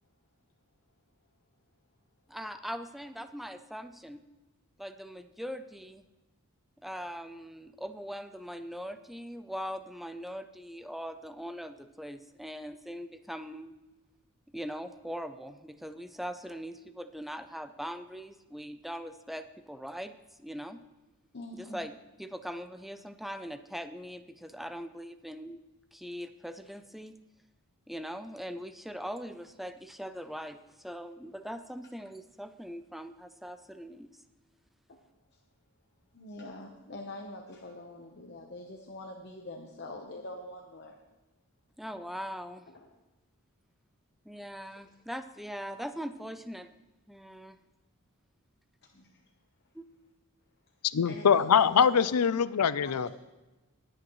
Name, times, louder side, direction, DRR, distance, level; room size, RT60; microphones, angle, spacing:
voice 1, 2.3-4.2 4.8-6.0 6.8-13.8 14.5-20.8 21.5-21.9 22.2-25.6 25.9-27.2 27.9-34.2 41.8-42.7 44.3-46.7 47.1-47.6 49.7-49.9, equal, ahead, 10 dB, 0.5 m, -41 dB
voice 2, 21.3-21.8 34.9-35.0 36.1-41.0 42.7-42.9 44.8-44.9 48.9-49.2 51.0-52.2 52.8-52.9, left 2 dB, 50° left, 1 dB, 1.0 m, -44 dB
voice 3, 50.9-53.1, left 7 dB, 90° left, 16 dB, 0.5 m, -23 dB
21.0 x 8.8 x 3.1 m, 1.1 s
head